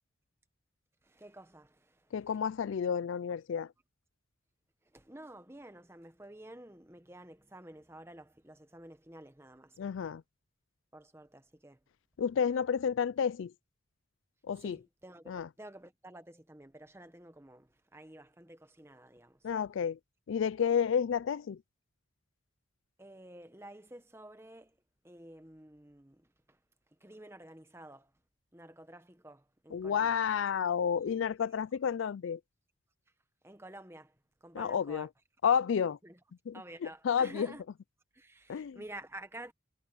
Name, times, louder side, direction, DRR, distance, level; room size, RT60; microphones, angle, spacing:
voice 1, 1.0-2.1 4.8-9.8 10.9-11.8 14.6-19.5 23.0-24.8 25.0-26.6 27.0-28.1 28.5-30.2 33.4-34.2 34.4-35.1 36.0-36.2 36.5-37.6 38.1-39.5, right 1 dB, 10° right, 1.1 m, -51 dB
voice 2, 2.1-3.7 9.8-10.2 12.2-13.5 14.5-14.8 15.3-15.5 19.4-20.0 20.3-21.6 29.7-32.4 34.5-35.1 35.4-36.0 36.5-37.5 38.5-38.8, left 7 dB, 75° left, 0.4 m, -31 dB
head